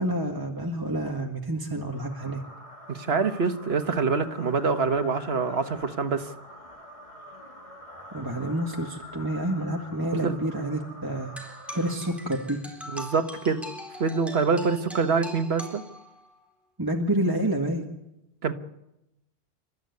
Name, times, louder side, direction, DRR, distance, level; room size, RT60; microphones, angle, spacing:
voice 1, 0.0-2.4 8.1-12.6 16.8-17.8, right 1 dB, 20° right, 1 dB, 1.9 m, -29 dB
sound 1, 1.9-12.7, left 1 dB, 30° left, 2.6 m, -46 dB
voice 2, 2.9-6.3 10.2-10.3 12.9-13.6 14.0-15.8 18.4-18.5, right 5 dB, 70° right, 8 dB, 1.6 m, -25 dB
sound 2, 11.4-16.4, equal, ahead, 4.1 m, -42 dB
29.0 x 13.5 x 9.6 m, 0.90 s
omnidirectional pair, 1.1 m